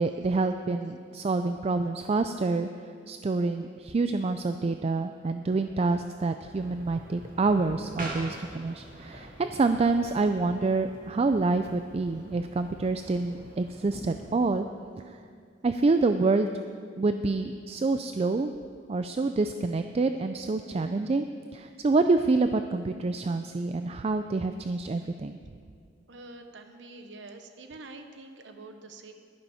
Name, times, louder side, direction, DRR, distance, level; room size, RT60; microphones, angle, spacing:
voice 1, 0.0-2.7 3.1-14.6 15.1-15.2 15.6-16.5 17.0-18.5 18.9-21.3 21.5-25.4, right 3 dB, 35° right, 8 dB, 0.4 m, -27 dB
sound 1, 6.5-14.5, right 1 dB, 50° right, 2.3 m, -44 dB
voice 2, 26.1-29.1, right 2 dB, 70° right, 6 dB, 0.9 m, -46 dB
11.5 x 10.5 x 5.6 m, 2.2 s
head